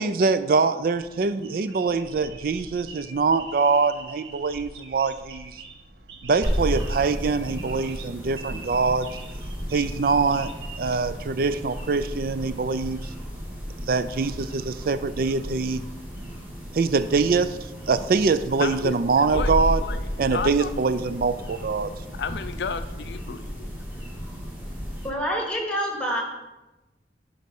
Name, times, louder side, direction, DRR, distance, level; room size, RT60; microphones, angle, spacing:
voice 1, 0.0-5.6 6.2-9.1 9.7-10.5 10.8-13.1 13.8-15.8 16.7-17.6 17.9-19.8 20.2-21.9, right 4 dB, 55° right, 12 dB, 0.4 m, -24 dB
sound 1, 0.9-11.7, right 3 dB, 85° right, 1.2 m, -44 dB
sound 2, 6.4-25.1, equal, 10° right, 2.3 m, -33 dB
voice 2, 18.6-19.5 19.8-20.7 22.1-23.7, left 5 dB, 70° left, 12 dB, 0.4 m, -32 dB
voice 3, 25.0-26.2, equal, 5° left, 0 dB, 2.0 m, -27 dB
10.5 x 5.2 x 5.4 m, 1.0 s
head